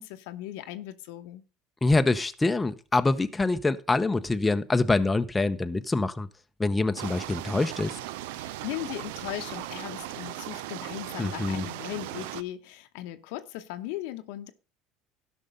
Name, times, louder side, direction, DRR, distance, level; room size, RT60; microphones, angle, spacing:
voice 1, 0.0-1.4 8.3-14.5, left 14 dB, 75° left, 0.9 m, -38 dB
voice 2, 1.8-6.3 6.6-8.0 11.2-11.7, left 3 dB, 15° left, 0.7 m, -25 dB
sound 1, 7.0-12.4, right 15 dB, 80° right, 0.4 m, -38 dB
12.5 x 5.4 x 5.3 m
supercardioid pair, 95°, 0 cm